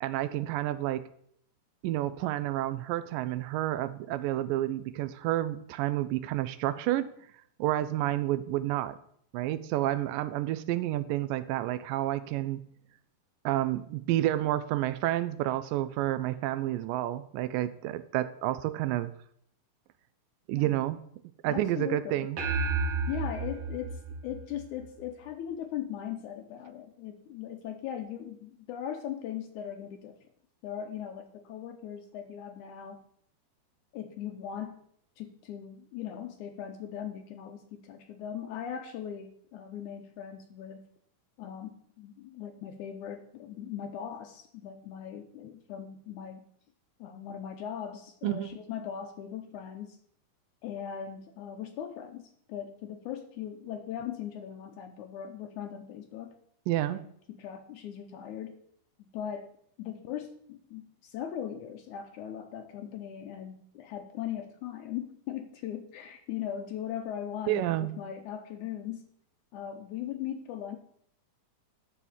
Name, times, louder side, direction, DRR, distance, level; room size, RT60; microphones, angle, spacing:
voice 1, 0.0-1.0 1.8-7.1 7.6-9.0 9.3-12.6 13.5-19.1 20.5-21.0 21.4-22.4 48.2-48.5 56.7-57.0 67.5-67.9, right 14 dB, 80° right, 14 dB, 2.1 m, -30 dB
voice 2, 21.5-22.3 23.1-30.2 30.6-33.0 33.9-34.9 35.2-40.8 41.4-46.4 47.0-50.0 50.6-56.4 56.9-57.0 57.3-58.6 59.0-59.5 59.8-69.0 69.5-70.8, left 9 dB, 75° left, 6 dB, 1.9 m, -39 dB
sound 1, 22.4-25.0, right 4 dB, 50° right, 2.4 m, -32 dB
12.0 x 4.2 x 7.2 m, 0.66 s
omnidirectional pair, 4.0 m